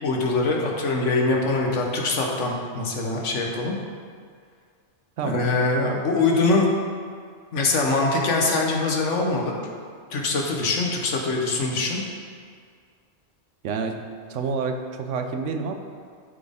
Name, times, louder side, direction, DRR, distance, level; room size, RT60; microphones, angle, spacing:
voice 1, 0.0-3.8 5.2-6.7 7.5-9.6 10.1-12.0, left 3 dB, 85° left, 0 dB, 1.3 m, -23 dB
voice 2, 5.2-5.5 13.6-14.0 14.3-15.7, right 5 dB, 90° right, 6 dB, 1.0 m, -28 dB
12.5 x 4.2 x 3.5 m, 2.1 s
omnidirectional pair, 1.2 m